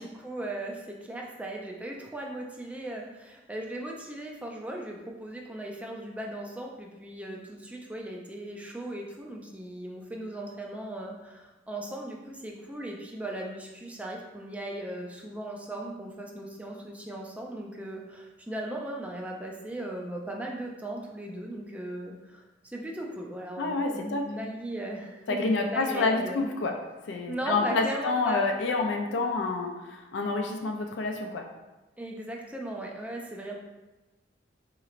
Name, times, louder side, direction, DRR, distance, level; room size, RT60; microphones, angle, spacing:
voice 1, 0.0-26.4 27.3-28.5 32.0-33.5, right 1 dB, 10° right, 0 dB, 0.4 m, -37 dB
voice 2, 23.6-24.3 25.3-26.7 27.1-31.4, left 3 dB, 75° left, 3 dB, 0.4 m, -28 dB
4.1 x 2.9 x 2.5 m, 1.1 s
head